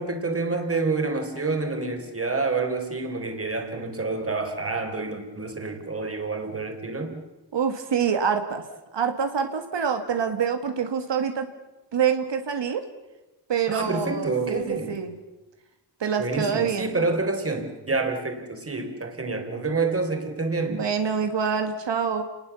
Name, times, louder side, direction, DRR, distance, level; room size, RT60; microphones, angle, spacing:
voice 1, 0.0-7.2 13.7-15.0 16.2-20.8, right 3 dB, 30° right, 6 dB, 3.7 m, -28 dB
voice 2, 7.5-8.6 8.9-11.5 11.9-12.8 13.5-15.2 16.0-17.1 20.7-22.2, right 7 dB, 90° right, 6 dB, 2.0 m, -26 dB
30.0 x 20.0 x 7.0 m, 1.0 s
wide cardioid pair, 145°, 42 cm